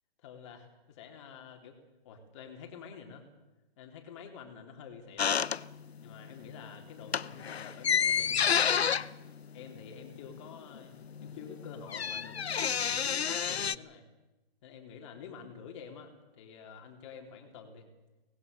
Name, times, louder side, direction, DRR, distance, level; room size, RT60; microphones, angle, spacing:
voice 1, 0.2-1.8 2.0-3.3 3.8-5.4 6.0-9.1 9.5-14.0 14.6-17.9, left 6 dB, 30° left, 3 dB, 3.7 m, -48 dB
sound 1, 5.2-6.1 6.4-6.6 7.0-10.5 10.8-10.9 11.0-13.8, left 7 dB, 80° left, 0.9 m, -30 dB
24.5 x 20.0 x 6.9 m, 1.0 s
hypercardioid pair, 155°, 31 cm